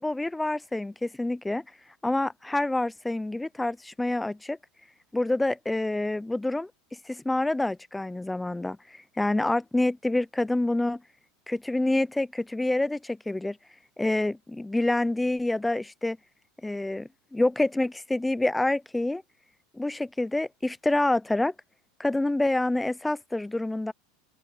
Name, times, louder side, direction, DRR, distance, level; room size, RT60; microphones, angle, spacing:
voice 1, 0.0-1.6 2.0-4.6 5.1-6.7 7.1-11.0 11.5-13.6 14.0-16.2 16.6-19.2 19.7-21.5 22.0-23.9, left 2 dB, 5° left, 0.4 m, -27 dB
supercardioid pair, 170°, 0 cm